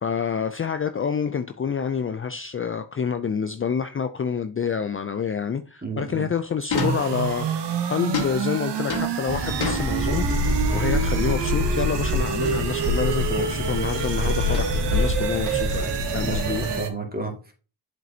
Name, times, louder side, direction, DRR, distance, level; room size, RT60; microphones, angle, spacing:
voice 1, 0.0-16.7, left 6 dB, 30° left, 0.5 m, -28 dB
voice 2, 5.8-6.3 16.2-17.5, right 3 dB, 20° right, 2.2 m, -32 dB
sound 1, 6.7-7.6 8.1-10.6 10.9-11.3 12.4-12.9 13.2-13.6 14.5-15.3, left 4 dB, 60° left, 1.7 m, -32 dB
sound 2, 6.7-16.9, right 7 dB, 75° right, 1.0 m, -29 dB
sound 3, 9.3-16.8, equal, 55° right, 2.3 m, -26 dB
7.5 x 5.2 x 2.8 m
cardioid pair, 55°, 42 cm